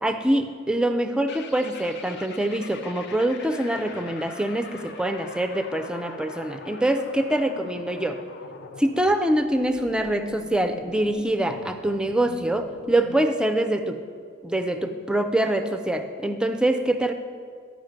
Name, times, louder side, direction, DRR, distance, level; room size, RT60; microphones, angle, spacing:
voice 1, 0.0-8.2 8.8-14.0 14.4-17.1, right 1 dB, 5° right, 7 dB, 0.4 m, -24 dB
sound 1, 1.3-13.3, left 4 dB, 50° left, 0.5 m, -43 dB
12.0 x 5.0 x 5.1 m, 2.2 s
head